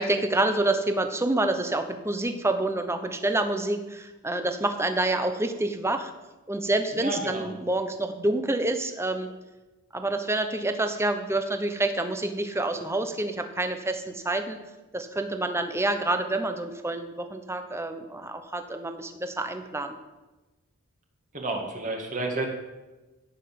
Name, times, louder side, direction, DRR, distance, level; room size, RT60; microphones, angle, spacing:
voice 1, 0.0-6.1 6.5-9.3 9.9-14.6 14.9-20.0, right 2 dB, 10° right, 7 dB, 1.1 m, -27 dB
voice 2, 7.0-7.5 21.3-22.5, right 2 dB, 35° right, 1 dB, 2.1 m, -30 dB
16.0 x 6.5 x 7.6 m, 1.1 s
head